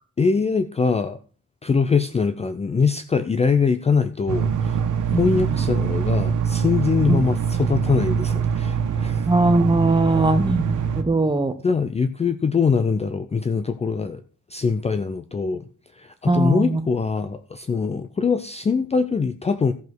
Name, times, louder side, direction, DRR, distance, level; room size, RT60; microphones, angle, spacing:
voice 1, 0.2-1.2 1.6-9.3 10.0-10.4 11.6-14.2 14.5-19.7, left 5 dB, 20° left, 11 dB, 0.5 m, -23 dB
sound 1, 4.3-11.0, right 7 dB, 75° right, 1.5 m, -23 dB
voice 2, 5.1-5.6 7.1-7.2 9.3-11.5 16.3-16.8, right 2 dB, 15° right, 10 dB, 1.0 m, -20 dB
14.5 x 5.2 x 6.1 m, 0.42 s
cardioid pair, 140°, 31 cm